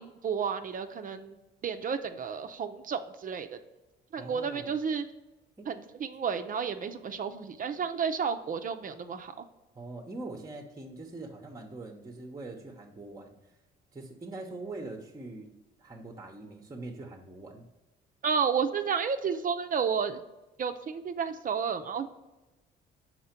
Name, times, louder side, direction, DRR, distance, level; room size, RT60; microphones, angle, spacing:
voice 1, 0.0-1.3 1.6-3.5 4.1-5.0 5.7-9.4 18.2-20.2 20.6-22.1, right 6 dB, 45° right, 8 dB, 0.6 m, -31 dB
voice 2, 4.2-4.7 5.6-5.7 7.7-7.9 9.7-13.3 13.9-15.5 15.8-17.7, right 2 dB, 15° right, 2 dB, 0.8 m, -43 dB
5.5 x 4.4 x 4.4 m, 1.1 s
cardioid pair, 80°, 20 cm